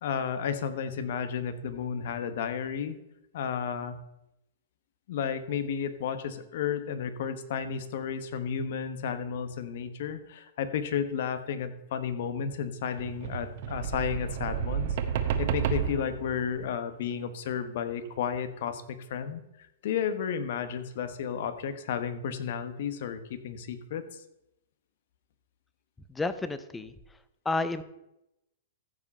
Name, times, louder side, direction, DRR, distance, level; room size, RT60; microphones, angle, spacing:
voice 1, 0.0-3.0 3.3-4.0 5.1-14.9 15.4-19.4 19.8-24.0, left 7 dB, 60° left, 11 dB, 1.1 m, -32 dB
sound 1, 13.0-16.6 18.3-18.4, right 8 dB, 50° right, 1.1 m, -31 dB
voice 2, 26.1-26.9 27.4-27.8, left 3 dB, 10° left, 13 dB, 0.6 m, -30 dB
14.5 x 5.1 x 5.4 m, 0.87 s
hypercardioid pair, 145°, 0 cm